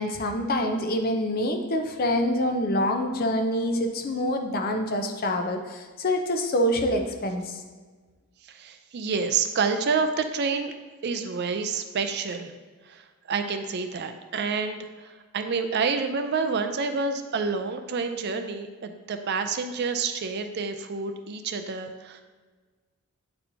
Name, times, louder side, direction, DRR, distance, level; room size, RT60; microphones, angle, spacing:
voice 1, 0.0-7.6, left 1 dB, 40° left, 5 dB, 0.6 m, -26 dB
voice 2, 8.5-10.7 11.0-12.5 12.9-22.2, right 5 dB, 50° right, 7 dB, 0.4 m, -28 dB
8.6 x 4.3 x 2.7 m, 1.4 s
head